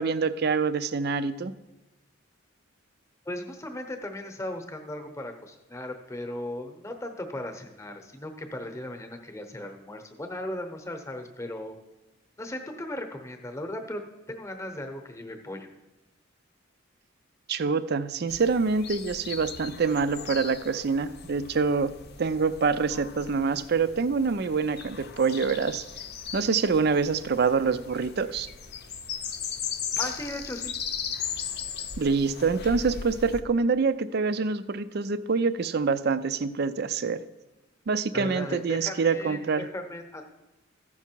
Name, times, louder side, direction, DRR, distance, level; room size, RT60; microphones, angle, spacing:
voice 1, 0.0-1.5 17.5-21.9 22.2-25.8 26.3-28.5 32.0-37.2 37.9-39.7, right 4 dB, 50° right, 13 dB, 0.4 m, -26 dB
voice 2, 3.2-11.8 12.4-14.0 14.3-15.7 30.0-30.7 38.1-40.2, left 1 dB, 15° left, 5 dB, 0.9 m, -37 dB
sound 1, 18.3-33.4, left 7 dB, 50° left, 0.6 m, -38 dB
14.5 x 5.9 x 4.5 m, 1.0 s
head